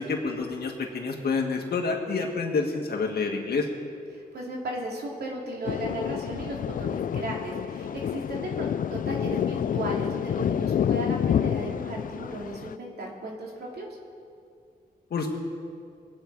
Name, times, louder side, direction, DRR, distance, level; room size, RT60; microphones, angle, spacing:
voice 1, 0.0-3.7 15.1-15.3, left 4 dB, 75° left, 1 dB, 1.9 m, -28 dB
voice 2, 4.1-13.9, right 1 dB, 85° right, -1 dB, 2.8 m, -36 dB
Thunder, 5.7-12.7, left 9 dB, 60° left, 0.4 m, -28 dB
22.0 x 8.9 x 4.7 m, 2.3 s
cardioid pair, 90°, 16 cm